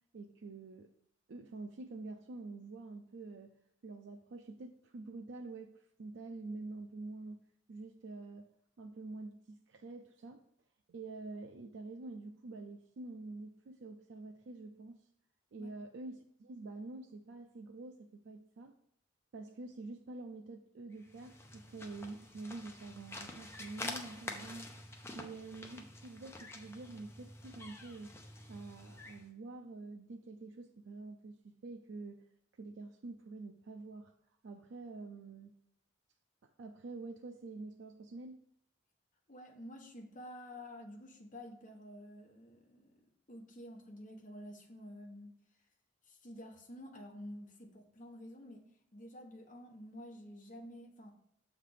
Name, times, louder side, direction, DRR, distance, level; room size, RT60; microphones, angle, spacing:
voice 1, 0.1-0.9 1.3-10.5 10.9-15.0 15.5-18.8 19.3-24.8 25.1-28.1 28.5-32.3 32.6-34.1 34.4-35.5 36.4-38.4, right 3 dB, 65° right, 4 dB, 0.4 m, -47 dB
sound 1, 21.0-29.3, left 2 dB, 15° left, 0.6 m, -48 dB
voice 2, 39.3-43.0 43.3-45.3 46.0-51.1, left 1 dB, 40° left, 0 dB, 1.2 m, -50 dB
6.6 x 3.3 x 5.6 m, 0.73 s
head